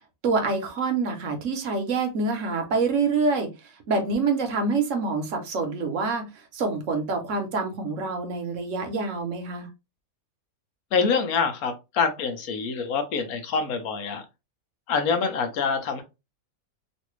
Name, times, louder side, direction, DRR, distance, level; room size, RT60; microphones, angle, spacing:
voice 1, 0.2-9.7, right 4 dB, 65° right, 1.1 m, -26 dB
voice 2, 10.9-14.2 14.9-16.0, left 5 dB, 90° left, 1.2 m, -25 dB
3.1 x 2.6 x 3.0 m
omnidirectional pair, 1.5 m